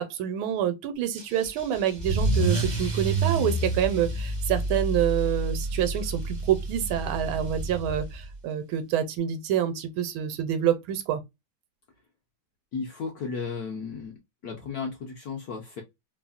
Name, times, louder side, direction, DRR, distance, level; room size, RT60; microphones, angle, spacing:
voice 1, 0.0-11.2, right 10 dB, 85° right, 1.4 m, -27 dB
Car / Engine starting / Accelerating revving vroom, 1.2-8.3, right 2 dB, 50° right, 0.5 m, -29 dB
voice 2, 12.7-14.1 14.4-15.8, left 5 dB, 70° left, 0.9 m, -34 dB
3.3 x 2.0 x 2.3 m
omnidirectional pair, 2.2 m